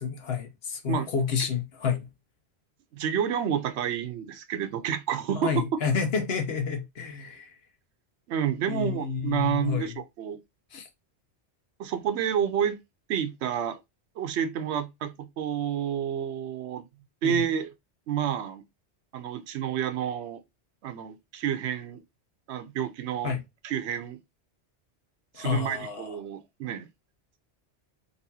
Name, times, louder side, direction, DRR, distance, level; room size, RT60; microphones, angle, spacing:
voice 1, 0.0-2.1 5.3-7.5 8.7-9.9 10.7-10.9 17.2-17.4 23.2-23.4 25.4-26.2, left 6 dB, 65° left, 1.0 m, -29 dB
voice 2, 2.9-5.6 8.3-10.4 11.8-12.8 13.1-13.8 14.2-16.8 17.2-17.7 18.1-18.6 19.1-20.4 20.8-22.0 22.5-23.4 23.6-24.2 25.4-26.9, right 9 dB, 75° right, 0.9 m, -29 dB
4.0 x 2.6 x 2.7 m
omnidirectional pair, 1.2 m